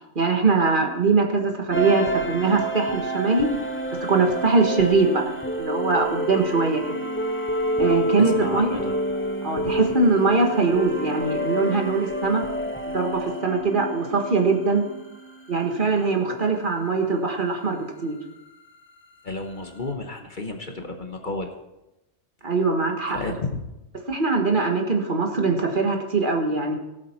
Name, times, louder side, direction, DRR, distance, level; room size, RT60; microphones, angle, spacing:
voice 1, 0.1-3.5 4.1-5.2 5.6-6.8 7.8-8.8 9.4-12.4 12.9-14.8 15.5-18.2 22.4-23.2 24.1-26.7, right 3 dB, 40° right, 3 dB, 1.6 m, -22 dB
sound 1, 1.7-15.8, right 1 dB, 10° left, 0.9 m, -29 dB
voice 2, 8.2-8.9 9.6-9.8 19.2-21.5 23.1-23.6, left 3 dB, 40° left, 4 dB, 1.2 m, -32 dB
18.0 x 7.9 x 4.4 m, 0.95 s
omnidirectional pair, 1.3 m